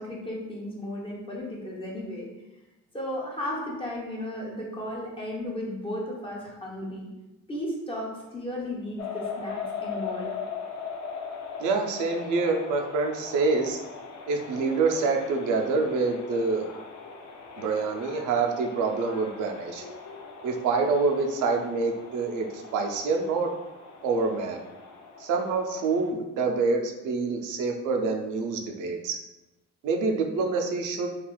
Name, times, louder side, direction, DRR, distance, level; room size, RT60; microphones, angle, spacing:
voice 1, 0.0-2.3 2.9-7.1 7.5-10.3, left 1 dB, 20° left, -3 dB, 0.8 m, -34 dB
sound 1, 9.0-26.1, left 5 dB, 65° left, 0.5 m, -40 dB
voice 2, 11.6-13.8 14.3-16.7 17.6-19.8 20.4-23.5 24.0-24.6 25.2-29.2 29.8-31.1, right 4 dB, 80° right, 3 dB, 0.5 m, -26 dB
3.2 x 2.4 x 2.2 m, 1.0 s
cardioid pair, 90°, 30 cm